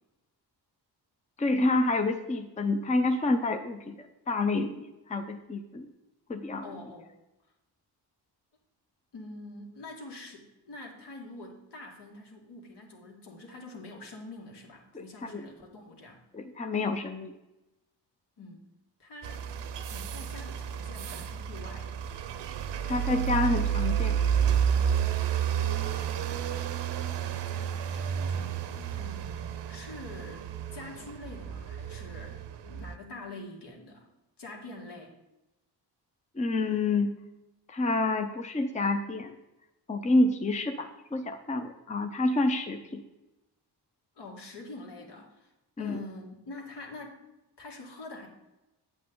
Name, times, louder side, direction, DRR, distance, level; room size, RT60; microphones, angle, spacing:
voice 1, 1.4-5.9 6.3-6.6 14.9-15.5 16.3-17.3 22.9-24.2 36.4-37.2 37.7-39.3 39.9-43.0 45.8-46.0, left 2 dB, 15° left, 6 dB, 0.6 m, -28 dB
voice 2, 6.6-7.1 9.1-16.2 18.4-18.7 19.0-19.4 19.9-22.0 27.2-34.1 34.4-35.1 44.2-45.5 45.8-47.2 47.6-48.3, left 2 dB, 70° left, 0 dB, 2.2 m, -46 dB
sound 1, 19.2-32.9, right 8 dB, 85° right, 0.8 m, -31 dB
8.7 x 8.1 x 3.8 m, 0.97 s
cardioid pair, 120°, 41 cm